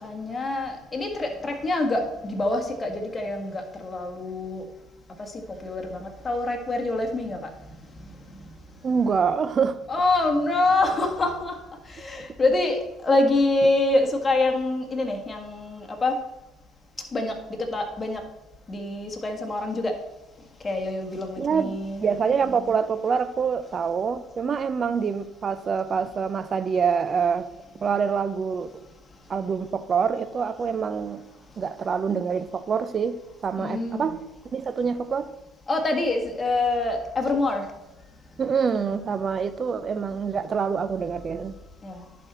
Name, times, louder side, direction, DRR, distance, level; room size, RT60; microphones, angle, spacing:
voice 1, 0.0-4.6 5.6-7.4 9.9-11.5 11.9-16.2 17.1-17.4 17.7-18.2 18.7-19.9 20.6-22.1 33.6-34.1 35.7-37.6 41.8-42.0, left 2 dB, 25° left, 1.6 m, -25 dB
voice 2, 8.8-9.8 12.2-12.3 21.4-21.8 22.0-27.5 27.8-28.7 29.3-31.2 31.6-34.2 34.4-35.3 38.4-41.5, right 6 dB, 40° right, 0.5 m, -26 dB
10.5 x 4.3 x 4.2 m
supercardioid pair, 75°, 0 cm